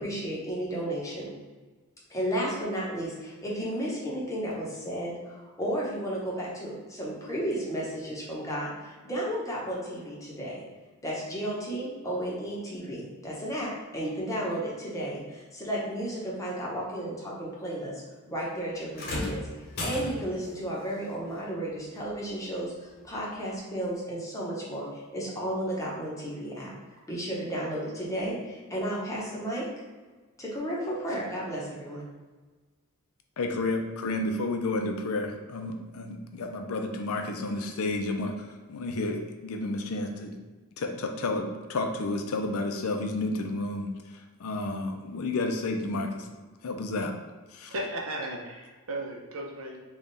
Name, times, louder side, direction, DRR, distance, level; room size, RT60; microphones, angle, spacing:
voice 1, 0.0-1.3 2.1-10.6 11.0-18.0 18.3-19.4 19.8-26.7 27.1-29.7 30.4-32.1, right 1 dB, 15° left, -5 dB, 0.9 m, -33 dB
sound 1, 18.9-20.5 22.0-22.1 23.0-23.1, left 1 dB, 45° left, 0.8 m, -35 dB
voice 2, 33.4-40.4 40.8-46.3 46.6-47.1 47.5-47.7, left 2 dB, 70° left, 4 dB, 0.5 m, -31 dB
voice 3, 47.7-49.8, right 1 dB, 60° right, 0 dB, 0.7 m, -35 dB
3.5 x 2.3 x 3.9 m, 1.3 s
head